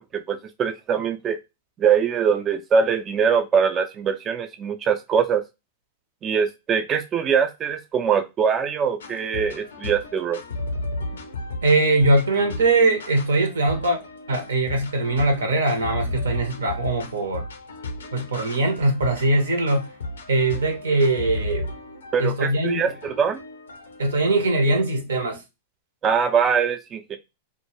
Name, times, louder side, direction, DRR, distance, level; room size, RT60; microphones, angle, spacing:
voice 1, 0.0-1.4 1.8-5.4 6.2-10.4 22.1-23.4 26.0-27.2, right 6 dB, 30° right, 0.3 m, -22 dB
sound 1, 9.0-25.0, left 2 dB, 85° left, 0.4 m, -35 dB
voice 2, 11.6-14.0 14.3-17.5 18.1-19.9 20.3-21.7 22.2-22.9 24.0-25.4, right 2 dB, 85° right, 0.7 m, -21 dB
2.2 x 2.1 x 3.0 m
hypercardioid pair, 115°, 0 cm